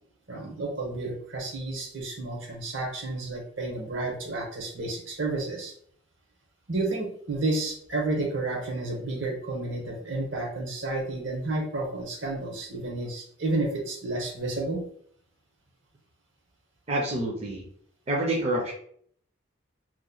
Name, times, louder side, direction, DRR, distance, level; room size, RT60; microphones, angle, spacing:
voice 1, 0.3-5.7 6.7-14.8, right 2 dB, 65° right, 1 dB, 1.0 m, -31 dB
voice 2, 16.9-17.6 18.1-18.7, right 1 dB, 30° right, -3 dB, 0.6 m, -27 dB
3.0 x 2.2 x 3.8 m, 0.63 s
head